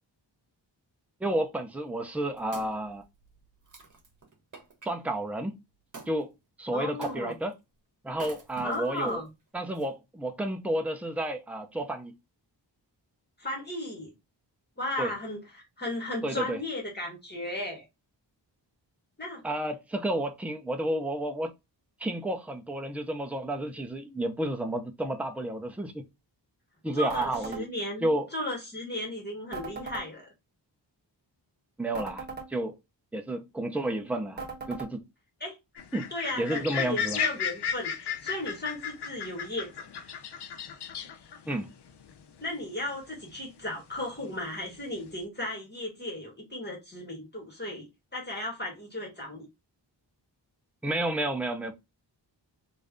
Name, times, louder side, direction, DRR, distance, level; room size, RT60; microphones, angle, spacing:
voice 1, 1.2-3.0 4.8-5.6 6.1-6.3 6.6-7.6 8.0-9.2 9.5-12.1 15.0-15.1 16.2-16.6 19.4-21.5 22.0-26.0 26.8-27.7 28.0-28.3 31.8-32.8 33.1-34.4 34.7-35.0 35.9-36.1 36.4-37.2 41.5-41.7 50.8-51.7, right 1 dB, 5° right, 0.6 m, -31 dB
Wood, 2.0-4.9 5.9-6.2 7.0-7.5 8.1-9.1 9.8-9.9, right 3 dB, 45° right, 1.2 m, -46 dB
voice 2, 6.7-7.3 8.6-9.3 13.4-14.1 14.8-17.8 19.2-19.4 26.9-30.3 35.4-35.6 36.1-39.7 42.4-49.4, left 1 dB, 25° left, 1.6 m, -35 dB
sound 1, 27.1-27.6 29.5-30.1 31.9-32.5 34.4-34.9, right 4 dB, 20° right, 1.3 m, -38 dB
sound 2, 35.8-43.6 43.9-45.2, left 8 dB, 65° left, 0.6 m, -35 dB
3.2 x 2.6 x 3.6 m
wide cardioid pair, 90°, 44 cm